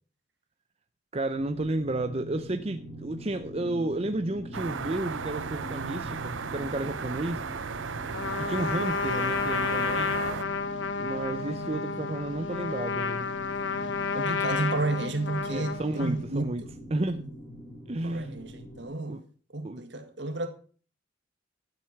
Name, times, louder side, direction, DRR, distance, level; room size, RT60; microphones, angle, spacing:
voice 1, 1.1-7.4 8.4-10.1 11.0-13.3 15.5-16.6 16.9-17.2 17.9-18.3 19.1-19.2 19.6-19.8, right 2 dB, 35° right, 0.6 m, -32 dB
sound 1, 1.3-18.9, right 1 dB, 15° left, 3.7 m, -43 dB
sound 2, 4.5-10.4, right 5 dB, 90° right, 0.8 m, -35 dB
Trumpet, 8.1-16.2, left 5 dB, 75° left, 1.4 m, -31 dB
voice 2, 14.1-16.7 18.0-19.2 19.5-20.5, right 2 dB, 65° right, 1.8 m, -32 dB
13.0 x 7.8 x 5.9 m
head